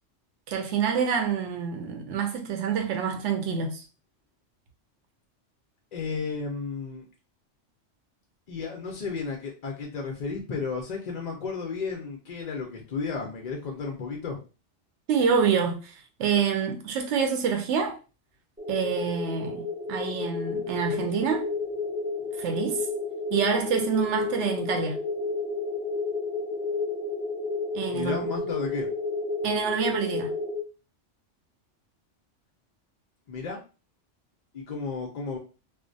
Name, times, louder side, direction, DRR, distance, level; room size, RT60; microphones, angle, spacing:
voice 1, 0.5-3.8 15.1-15.9 16.2-18.0 18.7-19.6 19.9-21.5 22.4-22.9 23.3-25.0 27.7-28.3 29.4-30.3, right 6 dB, 75° right, 0.9 m, -27 dB
voice 2, 5.9-7.0 8.5-14.4 27.9-28.9 33.3-33.6 34.5-35.4, left 4 dB, 60° left, 0.4 m, -33 dB
sound 1, 18.6-30.6, left 3 dB, 15° right, 0.4 m, -31 dB
2.4 x 2.1 x 2.5 m
omnidirectional pair, 1.2 m